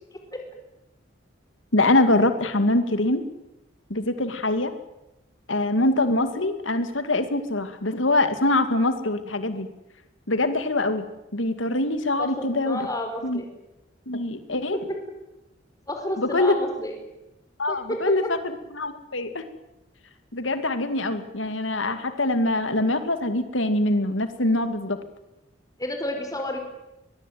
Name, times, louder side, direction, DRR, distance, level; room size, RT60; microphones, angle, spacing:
voice 1, 0.1-0.4 12.2-12.3 12.6-13.5 14.7-14.8 15.9-16.9 17.7-18.3 25.8-26.6, left 1 dB, 20° left, 4 dB, 5.0 m, -30 dB
voice 2, 1.7-3.2 3.9-4.7 5.5-9.7 10.3-11.1 11.3-12.9 13.2-13.4 14.1-14.8 16.2-16.6 17.6-18.2 18.7-19.5 20.3-25.0, left 2 dB, 90° left, 9 dB, 2.4 m, -23 dB
22.0 x 22.0 x 9.4 m, 0.94 s
head